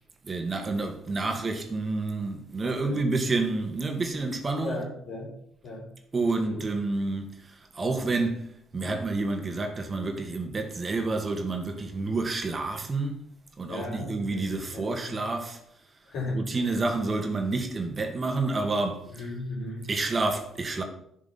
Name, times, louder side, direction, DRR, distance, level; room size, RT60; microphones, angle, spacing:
voice 1, 0.2-4.8 6.1-8.5 8.7-13.3 13.6-15.6 16.3-19.3 19.9-20.8, right 3 dB, 35° right, 1.8 m, -29 dB
voice 2, 2.6-3.1 4.6-5.3 5.6-5.9 6.2-6.7 13.7-15.2 16.1-16.4 19.1-19.9, left 2 dB, 65° left, 3.8 m, -36 dB
11.0 x 4.8 x 5.9 m
hypercardioid pair, 55°, 0 cm